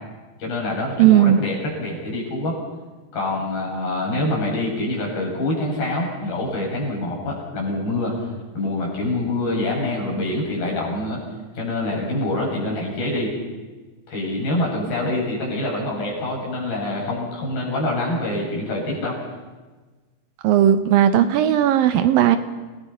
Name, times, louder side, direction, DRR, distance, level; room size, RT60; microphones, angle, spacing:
voice 1, 0.4-2.6 3.1-8.3 8.6-11.2 11.6-13.3 14.1-19.2, left 1 dB, 65° left, -2 dB, 8.6 m, -25 dB
voice 2, 1.0-1.4 20.4-22.4, right 11 dB, 75° right, 10 dB, 2.4 m, -16 dB
29.0 x 19.0 x 5.6 m, 1.3 s
omnidirectional pair, 4.5 m